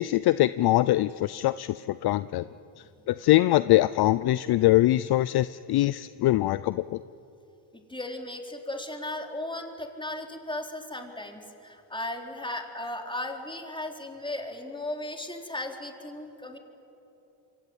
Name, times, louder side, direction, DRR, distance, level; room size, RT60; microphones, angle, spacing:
voice 1, 0.0-2.4 3.1-7.0, left 16 dB, 50° left, 16 dB, 0.6 m, -23 dB
voice 2, 7.9-16.6, left 1 dB, 10° left, 2 dB, 4.2 m, -36 dB
27.5 x 23.0 x 9.2 m, 2.9 s
supercardioid pair, 85°, 49 cm